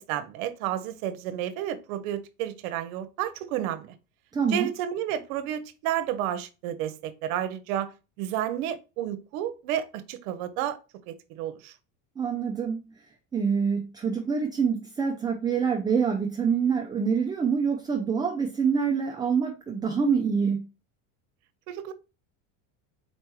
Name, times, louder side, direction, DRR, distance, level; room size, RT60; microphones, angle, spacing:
voice 1, 0.0-3.9 4.5-7.9 8.2-10.8 11.1-11.7 21.7-21.9, right 11 dB, 80° right, 0.8 m, -31 dB
voice 2, 4.3-4.7 12.2-12.9 13.3-20.7, right 6 dB, 10° right, 0.3 m, -26 dB
4.3 x 3.3 x 3.0 m
supercardioid pair, 135°, 41 cm